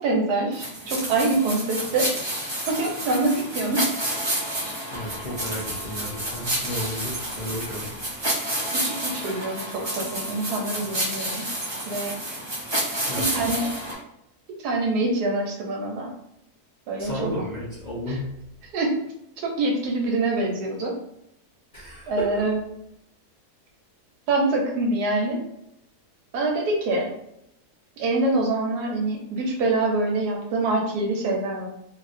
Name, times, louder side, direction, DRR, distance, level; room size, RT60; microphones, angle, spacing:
voice 1, 0.0-2.1 2.7-3.9 8.7-11.5 11.8-12.2 13.2-13.7 14.6-16.1 16.9-17.3 18.1-18.2 18.6-19.0 19.4-21.0 22.1-22.6 24.3-25.4 26.3-27.1 28.0-31.7, right 2 dB, 85° right, 0 dB, 1.3 m, -25 dB
sound 1, 0.5-13.9, right 1 dB, 35° right, 0.4 m, -30 dB
voice 2, 4.9-7.9 13.1-13.5 17.0-18.3 21.7-22.3, equal, 45° left, -7 dB, 0.6 m, -32 dB
2.8 x 2.8 x 2.5 m, 0.80 s
omnidirectional pair, 1.7 m